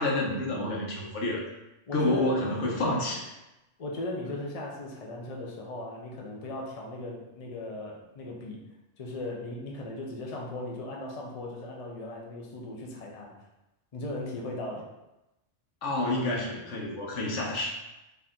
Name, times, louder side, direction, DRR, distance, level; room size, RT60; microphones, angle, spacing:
voice 1, 0.0-1.5 1.9-3.3 15.8-17.7, left 1 dB, 75° left, -2 dB, 1.2 m, -29 dB
voice 2, 1.9-2.4 3.8-8.6 9.0-13.3 13.9-14.9, left 2 dB, 40° left, -1 dB, 0.6 m, -37 dB
4.3 x 2.8 x 3.7 m, 0.96 s
omnidirectional pair, 1.3 m